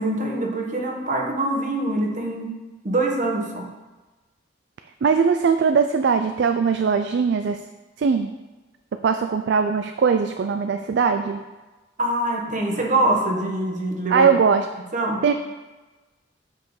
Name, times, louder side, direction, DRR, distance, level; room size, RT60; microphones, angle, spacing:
voice 1, 0.0-2.6 2.8-3.7 12.0-14.3 14.9-15.2, right 1 dB, 45° right, 1 dB, 1.2 m, -24 dB
voice 2, 5.0-7.6 8.0-8.3 9.0-11.4 14.1-14.7 15.2-15.3, right 6 dB, 65° right, 8 dB, 0.4 m, -20 dB
7.2 x 5.7 x 4.8 m, 1.2 s
head